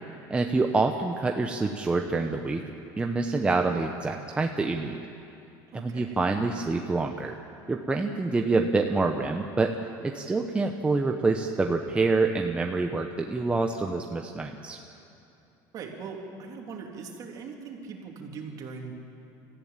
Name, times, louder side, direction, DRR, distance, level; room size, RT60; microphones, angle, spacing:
voice 1, 0.3-2.6 3.0-5.0 5.7-7.4 7.7-9.8 10.0-14.8, right 3 dB, 10° right, 4 dB, 0.8 m, -26 dB
voice 2, 5.7-6.2 15.7-18.9, right 5 dB, 40° right, 1 dB, 3.1 m, -40 dB
24.5 x 14.5 x 8.8 m, 2.8 s
cardioid pair, 140°, 9 cm